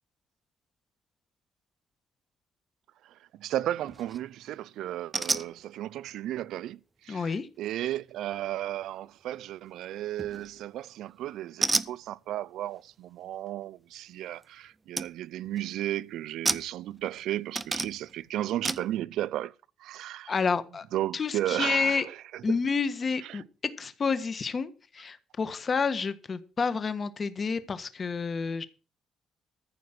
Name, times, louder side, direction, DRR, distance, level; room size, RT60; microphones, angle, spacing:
voice 1, 3.0-19.5 19.8-20.4 20.9-22.6 23.2-23.4, right 13 dB, 85° right, 0.5 m, -34 dB
sound 1, 3.8-4.2 5.1-5.5 10.2-10.6 11.6-11.9 14.4-14.5 15.0-15.1 15.4-15.8 16.4-17.2 17.5-18.1 18.6-18.9, right 3 dB, 20° right, 0.7 m, -30 dB
voice 2, 7.1-7.5 20.3-20.8 21.1-22.0 22.4-28.7, left 5 dB, 40° left, 1.4 m, -29 dB
14.5 x 5.2 x 7.7 m
cardioid pair, 90°, 0 cm